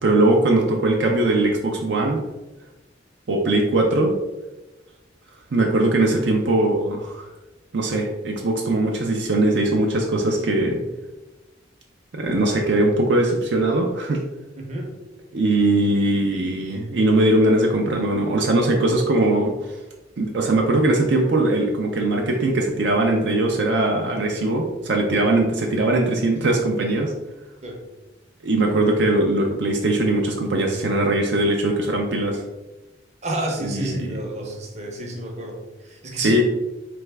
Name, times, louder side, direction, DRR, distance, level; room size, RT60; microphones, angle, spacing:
voice 1, 0.0-2.2 3.3-4.1 5.5-7.3 7.7-10.8 12.1-14.2 15.3-19.8 20.2-27.1 28.4-32.4 33.6-34.2 36.2-36.4, right 2 dB, 65° right, 0 dB, 0.5 m, -20 dB
voice 2, 14.6-14.9 27.6-27.8 33.2-36.3, right 1 dB, 35° right, 1 dB, 0.8 m, -30 dB
4.1 x 3.4 x 3.4 m, 1.1 s
head